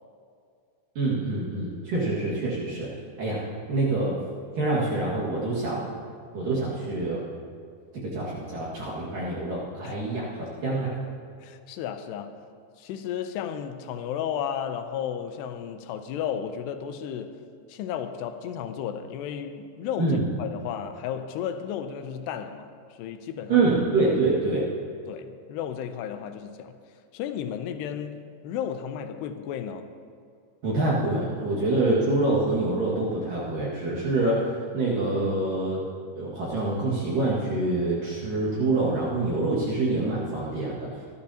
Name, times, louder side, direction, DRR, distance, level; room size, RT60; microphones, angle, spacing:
voice 1, 1.0-2.9 3.2-3.4 3.7-4.1 4.6-5.9 6.3-7.2 7.9-10.9 20.0-20.3 23.5-24.6 30.6-35.8 36.2-40.9, right 2 dB, 60° right, 3.2 m, -26 dB
voice 2, 11.4-12.4 12.8-17.4 17.7-22.7 23.0-23.7 25.1-26.8 27.1-29.9, left 9 dB, 85° left, 2.8 m, -33 dB
26.0 x 11.5 x 2.9 m
omnidirectional pair, 4.9 m